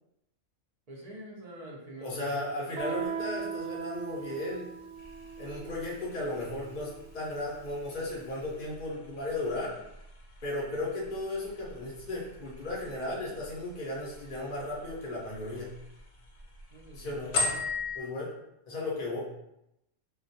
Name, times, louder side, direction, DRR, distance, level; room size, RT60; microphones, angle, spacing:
voice 1, 0.9-2.5 10.8-10.9 16.7-17.2, right 1 dB, 55° right, -4 dB, 0.4 m, -45 dB
voice 2, 2.0-4.7 5.4-9.7 10.4-15.7 16.9-17.3 17.9-18.3 18.7-19.2, left 2 dB, 50° left, -5 dB, 0.6 m, -35 dB
Guitar, 2.8-8.2, right 7 dB, 70° right, 0.9 m, -39 dB
sound 1, 4.9-18.0, left 3 dB, 70° left, 0.9 m, -41 dB
2.3 x 2.2 x 2.6 m, 0.83 s
omnidirectional pair, 1.3 m